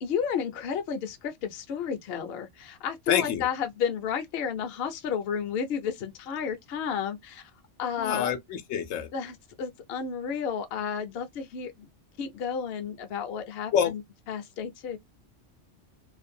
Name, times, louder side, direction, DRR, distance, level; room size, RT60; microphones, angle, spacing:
voice 1, 0.0-7.5 7.8-8.3 9.1-11.9 12.2-14.0 14.3-15.0, left 7 dB, 60° left, 0.7 m, -32 dB
voice 2, 3.1-3.5 8.0-9.1 13.7-13.9, left 8 dB, 85° left, 1.0 m, -27 dB
2.6 x 2.1 x 2.5 m
omnidirectional pair, 1.3 m